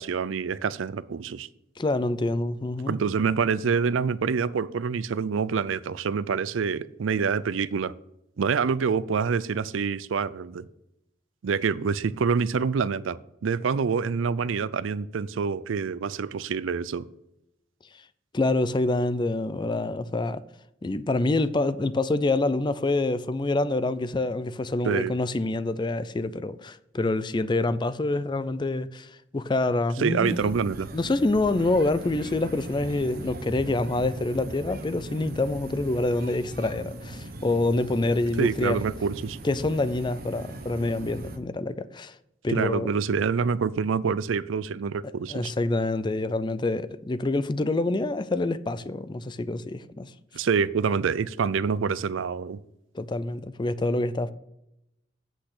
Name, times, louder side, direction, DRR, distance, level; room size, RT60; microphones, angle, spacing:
voice 1, 0.0-1.5 2.9-7.9 8.4-10.7 11.4-17.1 24.8-25.1 30.0-30.9 38.4-39.4 42.5-45.5 50.3-52.6, right 5 dB, 90° right, 0.4 m, -26 dB
voice 2, 1.8-3.0 18.3-20.4 20.8-30.5 30.9-38.8 39.4-42.1 42.4-42.9 45.3-50.1 52.9-54.3, left 2 dB, 25° left, 0.4 m, -26 dB
sound 1, 30.2-41.4, right 1 dB, 50° right, 1.0 m, -40 dB
8.1 x 6.1 x 6.6 m
head